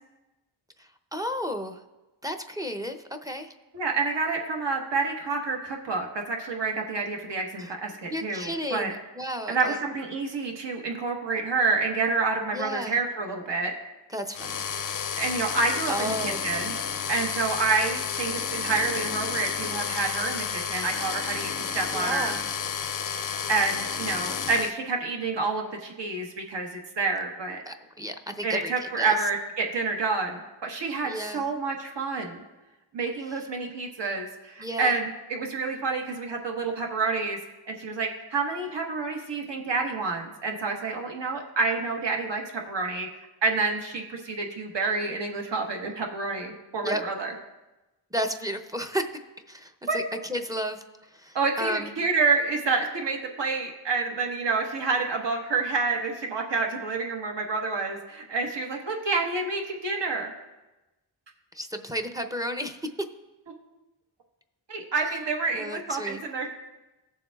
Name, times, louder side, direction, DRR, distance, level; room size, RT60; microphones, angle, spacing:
voice 1, 0.8-1.8 2.2-3.5 7.6-7.7 8.1-9.8 12.5-12.9 14.1-14.6 15.9-16.4 21.9-22.4 27.7-29.2 31.0-31.4 33.3-33.4 34.6-35.0 46.8-47.0 48.1-49.1 49.5-52.0 61.5-62.8 65.5-66.2, equal, 10° right, 6 dB, 0.5 m, -33 dB
voice 2, 3.7-8.9 9.5-13.7 15.2-16.7 17.1-22.3 23.5-27.6 28.4-32.4 32.9-37.4 37.7-43.1 43.4-47.3 49.9-50.0 51.3-60.3 64.7-66.5, right 4 dB, 65° right, 1 dB, 1.3 m, -28 dB
sound 1, 14.3-24.7, left 7 dB, 45° left, 0.5 m, -31 dB
17.0 x 7.1 x 2.3 m, 1.1 s
wide cardioid pair, 105°, 46 cm